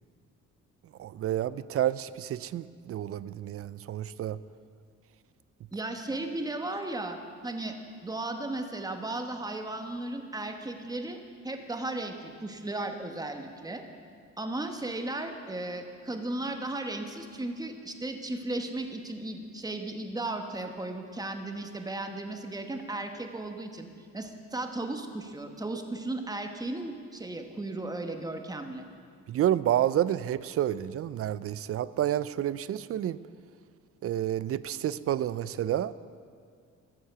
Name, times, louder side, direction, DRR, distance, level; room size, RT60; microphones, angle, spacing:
voice 1, 1.0-4.4 29.3-33.2 34.0-35.9, right 11 dB, 50° right, 17 dB, 0.4 m, -29 dB
voice 2, 5.7-7.7 8.0-11.2 11.4-13.8 14.4-23.9 24.1-28.8, right 2 dB, 10° right, 5 dB, 1.1 m, -35 dB
13.0 x 7.3 x 6.8 m, 2.2 s
cardioid pair, 90°, 30 cm